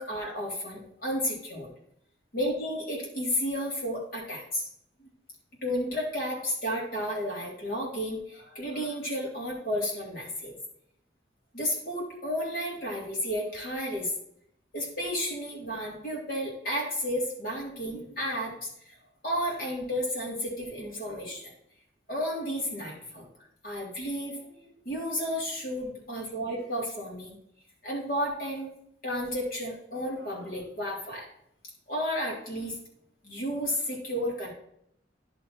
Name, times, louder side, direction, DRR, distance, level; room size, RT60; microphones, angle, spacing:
voice 1, 0.0-1.7 2.3-4.6 5.6-10.5 11.5-14.1 14.7-18.7 19.2-21.5 22.1-23.2 23.6-27.4 27.8-28.7 29.0-31.3 31.9-32.8 33.2-34.5, equal, 50° left, -3 dB, 3.4 m, -32 dB
10.5 x 4.6 x 4.3 m, 0.71 s
head